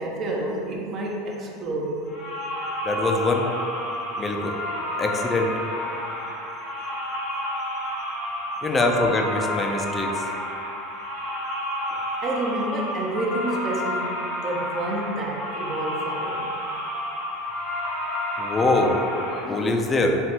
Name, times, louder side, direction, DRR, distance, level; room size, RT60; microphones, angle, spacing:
voice 1, 0.0-2.0 11.9-16.5, right 1 dB, 40° right, -1 dB, 0.5 m, -29 dB
sound 1, 2.1-19.4, left 1 dB, 75° left, 0.8 m, -30 dB
voice 2, 2.8-3.5 4.2-4.6 5.0-5.6 8.6-10.2 18.4-19.0 19.4-20.2, left 2 dB, 25° left, 2 dB, 0.4 m, -23 dB
3.2 x 2.4 x 2.8 m, 2.6 s
hypercardioid pair, 85°, 0 cm